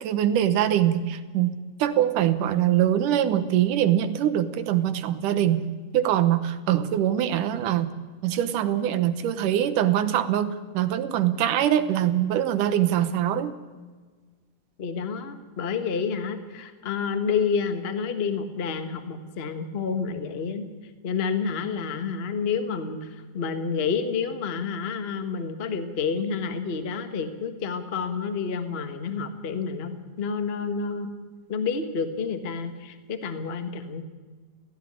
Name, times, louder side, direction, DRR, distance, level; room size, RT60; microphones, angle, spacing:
voice 1, 0.0-5.6 5.9-7.9 8.2-13.5, right 11 dB, 80° right, 11 dB, 2.5 m, -23 dB
voice 2, 14.8-20.6 21.0-31.1 31.5-34.0, left 5 dB, 40° left, 8 dB, 0.8 m, -29 dB
16.5 x 16.5 x 9.9 m, 1.4 s
omnidirectional pair, 3.7 m